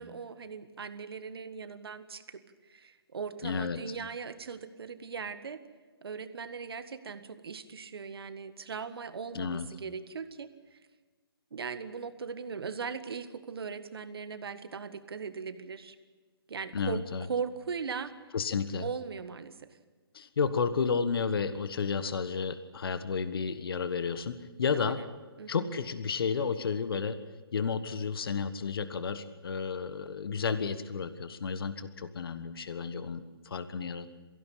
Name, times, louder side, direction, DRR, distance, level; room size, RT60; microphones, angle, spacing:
voice 1, 0.0-5.6 6.0-10.8 11.5-15.9 16.5-18.1 18.8-19.8 24.7-25.1 25.4-25.7, right 5 dB, 70° right, 10 dB, 1.7 m, -39 dB
voice 2, 3.4-3.8 9.3-9.7 16.7-17.3 18.3-18.8 20.1-25.0 25.5-27.2 27.5-34.1, left 5 dB, 65° left, 12 dB, 1.4 m, -32 dB
22.5 x 16.5 x 8.5 m, 1.4 s
hypercardioid pair, 140°, 13 cm